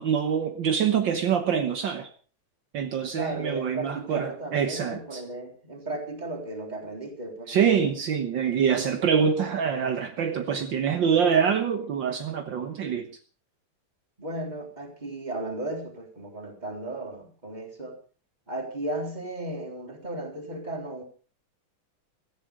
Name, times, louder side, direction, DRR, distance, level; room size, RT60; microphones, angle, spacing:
voice 1, 0.0-2.1 2.7-5.2 7.5-13.1, right 7 dB, 60° right, 1.2 m, -25 dB
voice 2, 3.1-7.6 14.2-18.0 18.5-21.0, right 2 dB, 15° right, 3.4 m, -35 dB
16.5 x 14.5 x 4.9 m
omnidirectional pair, 3.6 m